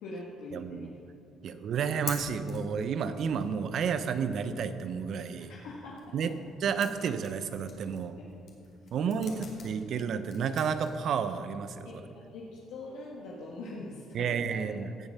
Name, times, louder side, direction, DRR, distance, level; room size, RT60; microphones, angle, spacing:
voice 1, 0.0-0.9 5.5-6.0 8.2-8.3 8.9-9.5 11.8-12.0 12.3-14.7, left 2 dB, 85° left, -5 dB, 1.7 m, -43 dB
voice 2, 0.5-0.9 1.4-5.5 6.1-6.3 6.6-8.2 8.9-12.0 14.1-14.9, right 6 dB, 65° right, 10 dB, 0.8 m, -31 dB
sound 1, 1.8-11.6, left 5 dB, 60° left, 2.7 m, -48 dB
17.0 x 7.2 x 5.6 m, 2.5 s
supercardioid pair, 70°, 0 cm